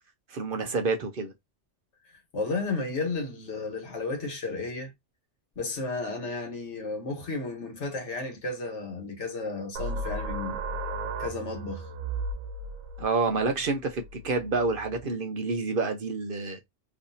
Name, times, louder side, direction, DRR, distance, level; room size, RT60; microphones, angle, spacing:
voice 1, 0.3-1.3 13.0-16.6, right 3 dB, 55° right, 0.8 m, -28 dB
voice 2, 2.3-4.9 5.6-10.6 11.2-11.9, left 3 dB, 75° left, 1.5 m, -33 dB
sound 1, 9.8-15.0, right 2 dB, 85° right, 1.0 m, -35 dB
3.2 x 2.7 x 2.6 m
omnidirectional pair, 1.2 m